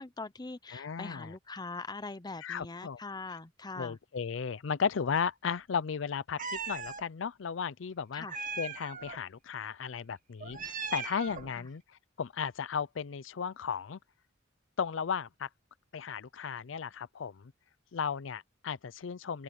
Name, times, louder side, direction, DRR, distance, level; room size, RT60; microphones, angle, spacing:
voice 1, 0.0-4.0 8.1-8.4 11.6-11.7, left 3 dB, 20° left, 0.7 m, -42 dB
voice 2, 0.7-1.3 2.4-3.0 3.8-8.3 8.6-11.8 12.2-14.0 14.8-15.5 15.9-17.5 17.9-19.4, left 6 dB, 70° left, 0.5 m, -35 dB
Meow, 6.4-7.0 8.3-9.2 10.4-11.5, right 5 dB, 45° right, 2.0 m, -38 dB
open air
head